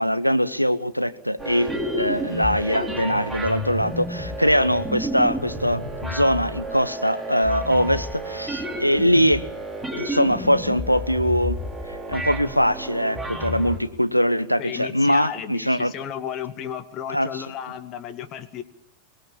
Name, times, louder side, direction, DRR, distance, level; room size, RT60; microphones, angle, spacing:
voice 1, 0.0-9.4 10.0-11.6 11.9-15.9 17.1-17.4, equal, 90° left, 12 dB, 1.0 m, -22 dB
sound 1, 1.4-13.8, equal, ahead, 3.9 m, -31 dB
voice 2, 14.6-18.6, left 9 dB, 35° left, 10 dB, 1.8 m, -34 dB
23.0 x 19.0 x 7.1 m, 0.70 s
figure-of-eight pair, 90°, 0 cm